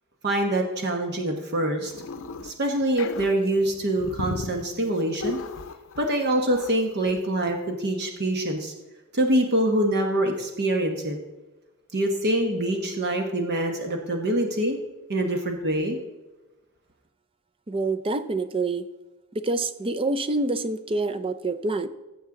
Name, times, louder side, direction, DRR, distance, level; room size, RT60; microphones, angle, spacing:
voice 1, 0.2-1.9 2.4-5.4 6.0-8.7 9.1-11.2 11.9-14.8 15.1-16.0, right 1 dB, 50° right, 3 dB, 1.1 m, -25 dB
sound 1, 1.8-2.5 2.8-6.2 6.5-6.7 7.1-7.2 7.5-7.6, left 3 dB, 60° left, 0.6 m, -35 dB
voice 2, 17.7-18.8 19.3-21.9, right 2 dB, 25° right, 11 dB, 0.5 m, -26 dB
16.0 x 7.3 x 3.8 m, 1.1 s
head